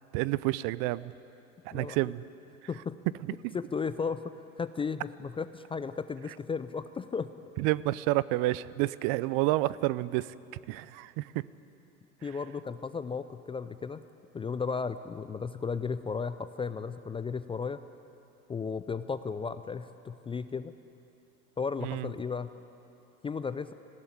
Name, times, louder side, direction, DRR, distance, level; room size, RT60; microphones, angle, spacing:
voice 1, 0.1-1.1 1.7-2.2 3.4-3.6 7.6-10.3 10.7-11.3 21.8-22.1, right 18 dB, 50° right, 19 dB, 0.6 m, -29 dB
voice 2, 3.5-7.3 12.2-14.0 14.3-17.8 18.5-20.7 21.6-22.5 23.2-23.7, left 5 dB, 15° left, 12 dB, 0.4 m, -34 dB
18.5 x 16.0 x 9.8 m, 2.8 s
hypercardioid pair, 90°, 42 cm